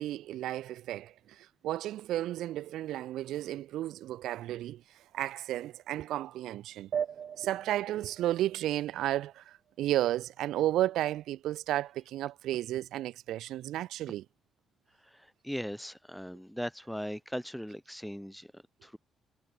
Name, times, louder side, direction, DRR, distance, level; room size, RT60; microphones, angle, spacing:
voice 1, 0.0-6.9 7.4-14.2, right 13 dB, 85° right, 0.4 m, -33 dB
sound 1, 6.9-9.9, right 8 dB, 55° right, 1.5 m, -39 dB
voice 2, 15.0-19.0, equal, ahead, 3.8 m, -39 dB
cardioid pair, 90°, 0 cm